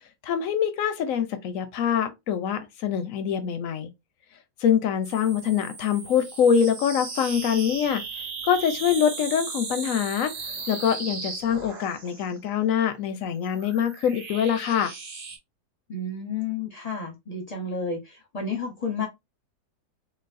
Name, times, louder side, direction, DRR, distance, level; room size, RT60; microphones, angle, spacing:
voice 1, 0.2-3.9 4.6-8.0 8.4-10.3 10.7-14.9, left 8 dB, 70° left, 0.8 m, -24 dB
sound 1, 5.0-12.3 13.2-15.4, right 4 dB, 45° right, 0.5 m, -37 dB
voice 2, 15.9-19.1, left 4 dB, 35° left, 0.7 m, -31 dB
3.9 x 2.4 x 2.5 m
omnidirectional pair, 1.7 m